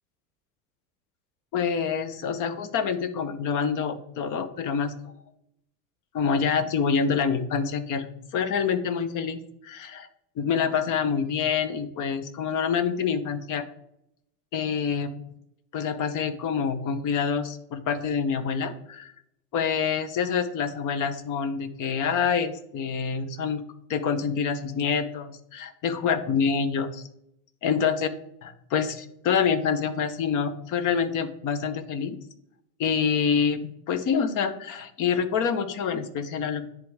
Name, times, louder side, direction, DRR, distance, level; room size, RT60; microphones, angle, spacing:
voice 1, 1.5-4.9 6.1-10.1 10.4-13.7 14.5-15.1 15.7-19.1 19.5-23.6 23.9-26.9 27.6-28.1 28.4-32.2 32.8-36.6, left 6 dB, 40° left, 12 dB, 0.8 m, -26 dB
10.0 x 3.5 x 3.5 m, 0.77 s
hypercardioid pair, 100°, 48 cm